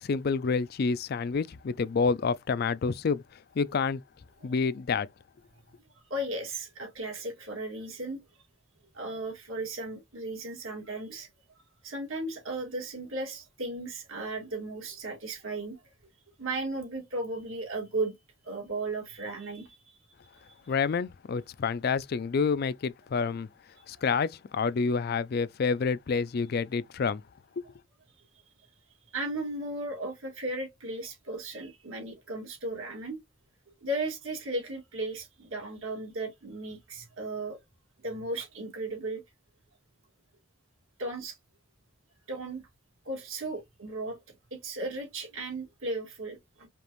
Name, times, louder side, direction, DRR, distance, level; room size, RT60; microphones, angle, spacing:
voice 1, 0.0-3.2 3.6-4.0 4.4-5.1 20.7-23.5 23.9-27.2 27.6-27.7, left 5 dB, 50° left, 0.4 m, -28 dB
voice 2, 6.1-8.2 8.9-11.3 11.8-15.8 16.4-18.1 18.4-20.0 20.5-20.7 29.1-33.2 33.8-37.6 38.0-39.2 41.0-41.4 42.3-42.7 43.0-46.7, right 2 dB, 80° right, 2.3 m, -36 dB
5.1 x 2.5 x 3.0 m
head